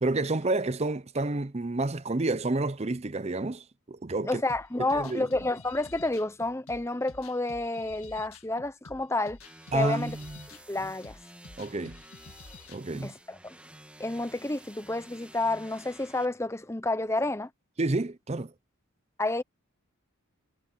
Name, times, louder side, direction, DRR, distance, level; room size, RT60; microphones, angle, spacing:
voice 1, 0.0-4.4 4.9-5.3 9.7-10.5 11.6-12.0 12.7-13.1 17.8-18.5, right 2 dB, 30° right, 0.6 m, -29 dB
voice 2, 4.2-9.4 9.7-10.2 10.7-11.2 13.0-13.6 14.0-17.5 19.2-19.4, left 2 dB, 15° left, 0.7 m, -30 dB
sound 1, 4.5-13.1, left 3 dB, 85° left, 1.7 m, -50 dB
sound 2, 9.4-16.2, right 1 dB, 5° right, 1.6 m, -52 dB
head